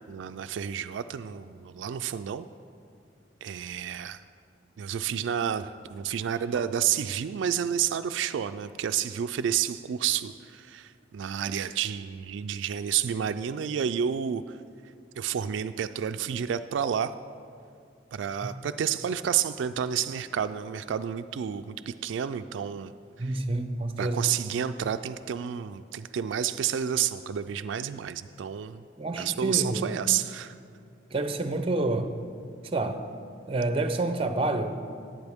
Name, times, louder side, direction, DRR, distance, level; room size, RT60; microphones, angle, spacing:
voice 1, 0.1-2.5 3.4-4.2 4.8-14.4 15.2-17.1 18.1-22.9 23.2-23.4 24.0-28.8 29.2-30.6, right 9 dB, 80° right, 10 dB, 0.3 m, -30 dB
voice 2, 23.2-24.3 29.0-29.9 31.1-32.1 32.7-33.0 33.5-34.8, right 2 dB, 30° right, 8 dB, 0.6 m, -28 dB
18.5 x 8.9 x 3.5 m, 2.3 s
head